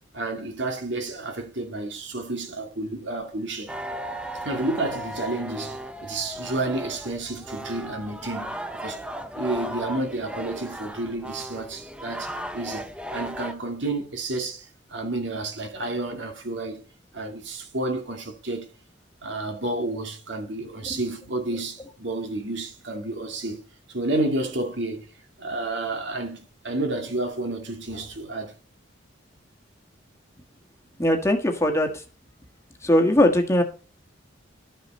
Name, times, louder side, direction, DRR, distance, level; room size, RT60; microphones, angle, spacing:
voice 1, 0.1-3.7 4.4-9.0 9.4-16.8 17.1-18.7 19.2-23.6 23.9-25.1 25.4-28.5, right 2 dB, 65° right, 2.2 m, -30 dB
sound 1, 3.7-13.5, right 1 dB, 5° right, 0.7 m, -36 dB
voice 2, 31.0-32.0 32.8-33.6, left 1 dB, 15° left, 1.6 m, -20 dB
12.5 x 6.6 x 4.3 m
head